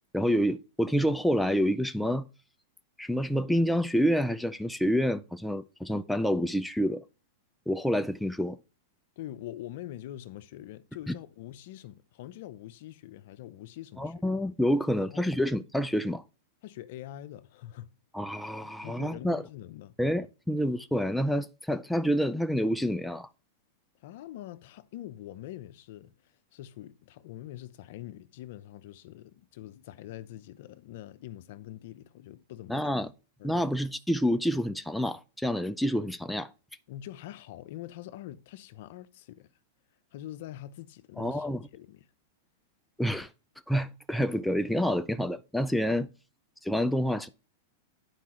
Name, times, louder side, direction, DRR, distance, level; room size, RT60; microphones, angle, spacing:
voice 1, 0.1-2.3 3.0-7.0 7.7-8.6 11.1-11.2 14.0-16.2 18.1-19.4 20.0-23.3 32.7-33.1 33.4-36.5 41.2-41.6 43.0-43.3 43.7-46.1 46.6-47.3, equal, ahead, 0.4 m, -28 dB
voice 2, 9.2-14.1 15.0-15.3 16.6-17.9 18.8-19.9 24.0-32.8 33.4-33.6 36.9-39.5 40.1-41.5 41.7-42.1, left 13 dB, 65° left, 0.6 m, -44 dB
10.5 x 4.7 x 3.0 m
hypercardioid pair, 130°, 0 cm